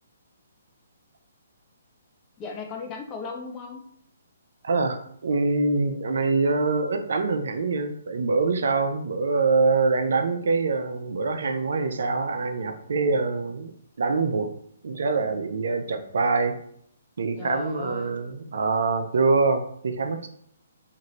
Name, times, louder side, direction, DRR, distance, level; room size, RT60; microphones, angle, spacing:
voice 1, 2.4-3.8 17.4-18.1, left 5 dB, 25° left, 3 dB, 0.5 m, -36 dB
voice 2, 4.6-13.7 14.0-14.5 14.8-16.6 17.2-20.3, right 3 dB, 70° right, 7 dB, 0.4 m, -24 dB
2.7 x 2.5 x 3.0 m, 0.65 s
hypercardioid pair, 140°, 0 cm